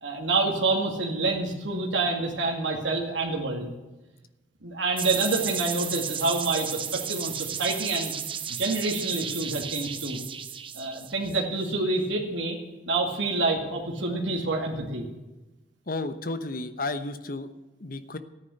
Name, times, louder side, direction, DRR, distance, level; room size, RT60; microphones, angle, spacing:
voice 1, 0.0-3.7 4.6-8.1 8.6-10.2 10.7-12.6 12.9-15.1, right 3 dB, 85° right, 0 dB, 2.3 m, -27 dB
sound 1, 5.0-11.7, right 8 dB, 30° right, 0.8 m, -34 dB
voice 2, 15.9-17.5 17.8-18.2, left 2 dB, 50° left, 11 dB, 1.0 m, -32 dB
13.5 x 9.7 x 7.8 m, 1.1 s
head